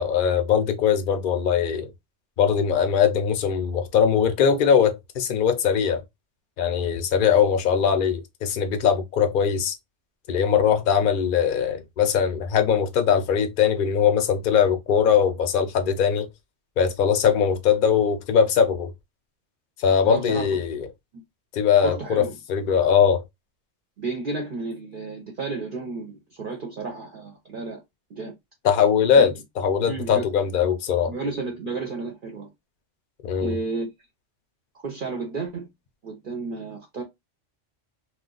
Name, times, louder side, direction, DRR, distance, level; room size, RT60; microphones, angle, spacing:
voice 1, 0.0-1.9 2.4-6.0 6.6-9.7 10.3-16.3 16.8-18.9 19.8-20.9 21.5-23.2 28.6-31.1 33.2-33.6, left 7 dB, 55° left, 0.7 m, -21 dB
voice 2, 20.0-20.6 21.8-22.4 24.0-27.8 28.1-28.3 29.2-29.3 29.8-30.3 30.6-30.7 31.1-32.5 33.4-33.9 34.8-35.7 36.0-37.0, right 3 dB, 50° right, 0.8 m, -32 dB
2.3 x 2.3 x 3.8 m
omnidirectional pair, 1.2 m